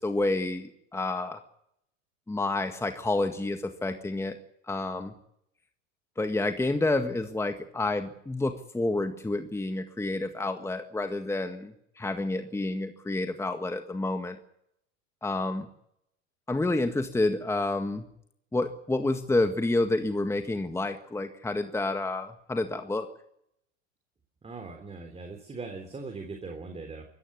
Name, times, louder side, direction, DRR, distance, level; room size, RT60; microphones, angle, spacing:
voice 1, 0.0-1.4 2.3-4.4 4.7-5.1 6.2-14.4 15.2-15.7 16.5-18.0 18.5-23.1, left 2 dB, 5° left, 7 dB, 1.7 m, -29 dB
voice 2, 24.4-27.1, right 3 dB, 15° right, 4 dB, 3.5 m, -40 dB
23.5 x 14.5 x 9.6 m, 0.74 s
hypercardioid pair, 90°, 37 cm